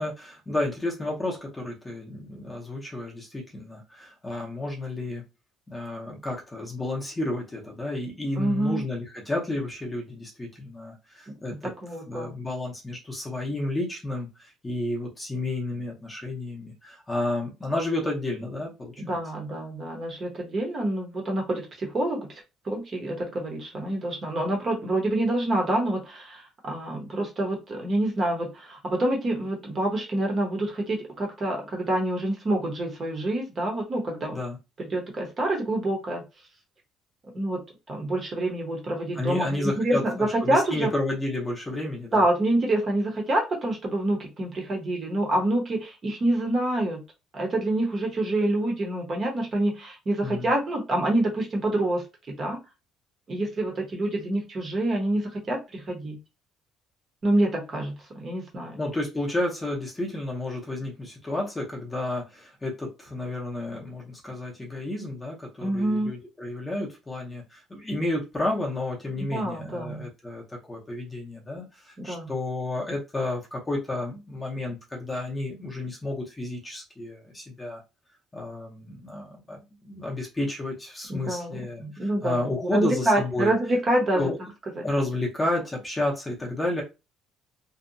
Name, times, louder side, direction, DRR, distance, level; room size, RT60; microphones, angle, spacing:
voice 1, 0.0-5.2 5.7-11.7 12.1-19.2 34.3-34.6 39.2-42.2 50.2-50.5 58.8-77.8 78.3-83.5 84.1-84.4 84.8-86.8, left 2 dB, 10° left, -2 dB, 0.6 m, -31 dB
voice 2, 8.4-8.8 11.3-12.4 19.0-22.3 22.6-34.4 34.8-36.2 37.3-37.6 37.9-40.9 42.1-47.0 47.3-52.6 53.3-56.2 57.2-58.8 65.6-66.1 69.3-70.0 72.0-72.3 81.1-84.3 84.7-84.8, right 1 dB, 25° right, 0 dB, 0.7 m, -27 dB
2.7 x 2.1 x 2.6 m, 0.26 s
cardioid pair, 175°, 0 cm